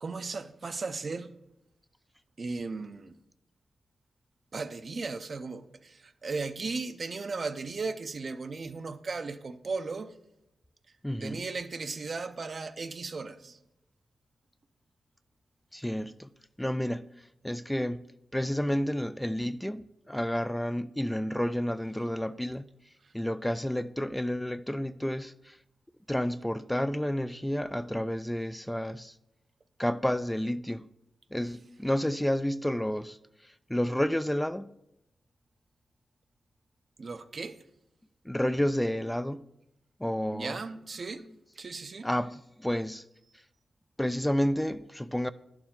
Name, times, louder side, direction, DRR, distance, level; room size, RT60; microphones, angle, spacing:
voice 1, 0.0-1.3 2.4-3.1 4.5-10.1 11.2-13.6 37.0-37.6 40.3-41.2 41.6-42.1, right 4 dB, 55° right, 0.5 m, -36 dB
voice 2, 11.0-11.4 15.7-16.3 16.6-18.1 18.3-22.6 23.1-25.6 26.1-29.1 29.8-30.9 31.3-33.2 33.7-34.7 38.3-39.4 40.0-40.6 42.0-43.1 44.0-45.3, equal, 10° left, 0.3 m, -30 dB
11.0 x 4.7 x 3.7 m
supercardioid pair, 45°, 0 cm